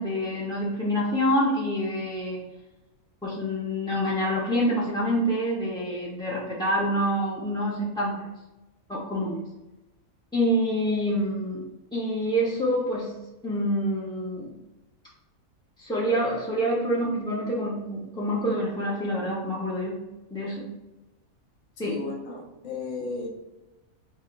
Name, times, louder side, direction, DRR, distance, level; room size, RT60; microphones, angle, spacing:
voice 1, 0.0-2.4 3.2-8.2 8.9-9.4 10.3-11.6 11.9-13.1 13.4-14.5 15.8-20.0 20.3-20.7 21.8-21.9, equal, 5° left, -6 dB, 0.5 m, -26 dB
voice 2, 21.8-23.3, left 3 dB, 35° left, -1 dB, 0.8 m, -34 dB
4.3 x 2.7 x 3.8 m, 1.0 s
omnidirectional pair, 1.5 m